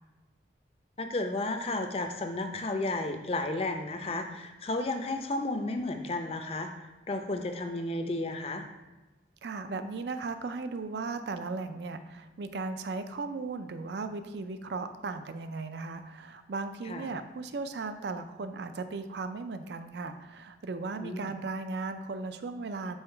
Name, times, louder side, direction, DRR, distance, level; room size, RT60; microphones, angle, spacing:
voice 1, 1.0-6.7 7.1-8.6 16.9-17.1 21.0-21.3, left 2 dB, 35° left, 6 dB, 0.5 m, -33 dB
voice 2, 9.4-23.0, right 3 dB, 70° right, 10 dB, 0.4 m, -36 dB
5.6 x 3.8 x 4.4 m, 1.1 s
head